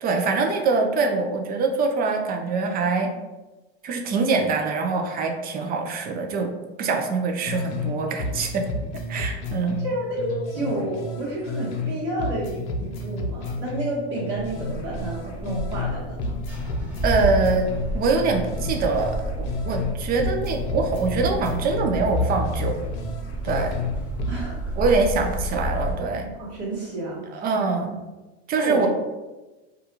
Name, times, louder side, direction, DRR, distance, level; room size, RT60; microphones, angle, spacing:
voice 1, 0.0-3.1 3.8-6.5 6.8-8.6 9.1-9.8 17.0-17.7 17.9-22.8 23.4-23.7 24.8-26.3 27.3-27.9 28.5-28.9, right 4 dB, 30° right, 3 dB, 0.4 m, -24 dB
sound 1, 7.4-7.9 8.2-11.9 12.2-15.9 16.2-19.9 20.2-23.9 24.2-24.4, left 2 dB, 80° left, 0.5 m, -31 dB
voice 2, 9.8-16.3 24.3-24.7 26.4-27.2 28.6-28.9, right 1 dB, 50° right, -6 dB, 1.2 m, -30 dB
sound 2, 14.4-25.9, equal, 5° right, 0.8 m, -30 dB
2.4 x 2.3 x 2.8 m, 1.1 s
supercardioid pair, 110°, 33 cm